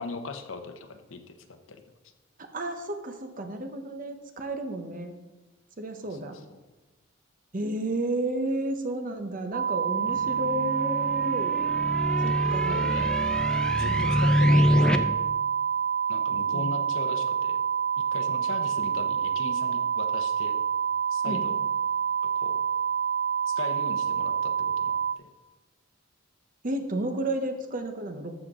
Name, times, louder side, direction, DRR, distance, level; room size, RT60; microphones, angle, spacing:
voice 1, 0.0-1.8 6.0-6.2 6.5-6.6 10.1-10.3 12.1-13.2 13.5-15.0 16.1-17.6 18.0-20.6 21.1-21.6 22.3-22.6 23.5-25.3, left 3 dB, 80° left, 7 dB, 1.0 m, -39 dB
voice 2, 2.5-5.1 5.8-6.4 7.5-11.6 12.2-12.8 13.9-14.0 16.5-16.7 21.2-21.4 26.6-28.3, right 1 dB, 45° right, 6 dB, 1.0 m, -32 dB
sound 1, 9.5-25.1, right 7 dB, 60° right, 0.4 m, -27 dB
sound 2, 10.0-15.0, equal, 5° left, 0.5 m, -26 dB
13.5 x 6.7 x 3.8 m, 1.1 s
head